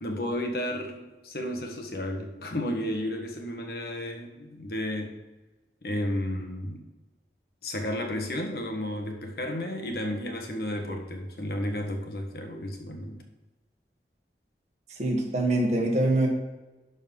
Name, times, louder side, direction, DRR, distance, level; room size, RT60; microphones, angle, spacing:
voice 1, 0.0-5.1 5.8-6.8 7.6-13.2, left 1 dB, 60° left, 3 dB, 1.4 m, -32 dB
voice 2, 15.0-16.3, right 1 dB, 40° right, 0 dB, 1.7 m, -24 dB
12.0 x 4.2 x 5.5 m, 1.1 s
head